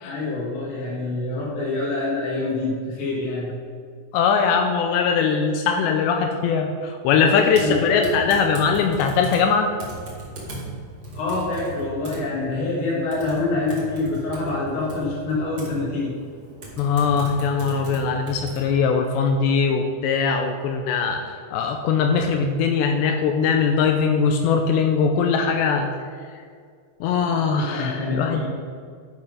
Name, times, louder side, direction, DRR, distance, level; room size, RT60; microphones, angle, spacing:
voice 1, 0.1-3.5 7.1-8.3 11.1-16.1 27.3-28.5, left 2 dB, 70° left, -6 dB, 3.8 m, -26 dB
voice 2, 4.1-9.7 16.8-25.9 27.0-28.5, left 5 dB, 85° left, 5 dB, 2.5 m, -21 dB
Typing, 7.5-18.7, right 2 dB, 55° right, 1.4 m, -38 dB
11.0 x 5.6 x 5.3 m, 2.1 s
omnidirectional pair, 5.5 m